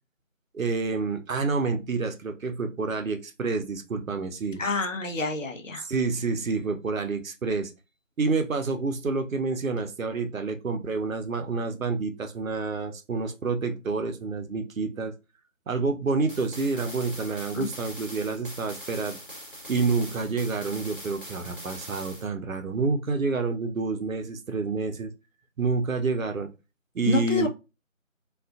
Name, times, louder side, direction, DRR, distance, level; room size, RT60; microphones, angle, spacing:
voice 1, 0.5-4.6 5.8-7.7 8.2-15.1 15.7-19.2 19.7-25.1 25.6-26.5 26.9-27.5, right 4 dB, 75° right, 6 dB, 0.6 m, -28 dB
voice 2, 4.6-5.9 17.5-17.7 27.1-27.5, left 3 dB, 70° left, 4 dB, 0.7 m, -27 dB
sound 1, 16.3-22.3, equal, 40° right, 0.8 m, -42 dB
2.4 x 2.4 x 2.3 m, 0.28 s
figure-of-eight pair, 170°, 40 cm